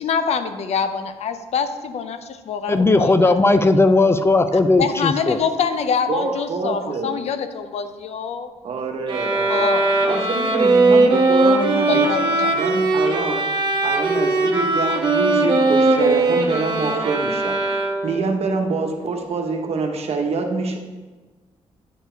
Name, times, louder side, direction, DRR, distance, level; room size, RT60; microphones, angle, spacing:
voice 1, 0.0-3.3 4.8-8.5 9.5-10.1 11.9-12.5, left 6 dB, 65° left, 9 dB, 0.6 m, -25 dB
voice 2, 2.7-5.4, left 2 dB, 20° left, 10 dB, 0.4 m, -16 dB
voice 3, 6.1-7.1 8.6-9.7 10.0-12.1 12.5-13.5 13.8-20.8, right 4 dB, 60° right, 3 dB, 1.1 m, -26 dB
sound 1, 9.1-18.3, right 2 dB, 45° right, 1.2 m, -19 dB
9.2 x 4.5 x 4.5 m, 1.3 s
cardioid pair, 85°, 12 cm